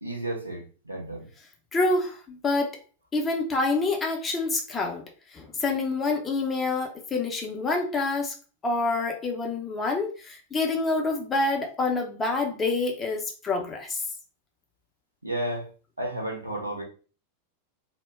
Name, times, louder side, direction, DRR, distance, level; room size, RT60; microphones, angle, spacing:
voice 1, 0.0-1.3 15.2-15.7 16.0-16.8, right 1 dB, 85° right, 0.8 m, -32 dB
voice 2, 1.7-2.8 3.1-5.0 5.3-8.3 8.6-14.0, left 3 dB, 20° left, 0.6 m, -27 dB
2.1 x 2.1 x 3.4 m
figure-of-eight pair, 90°, 0 cm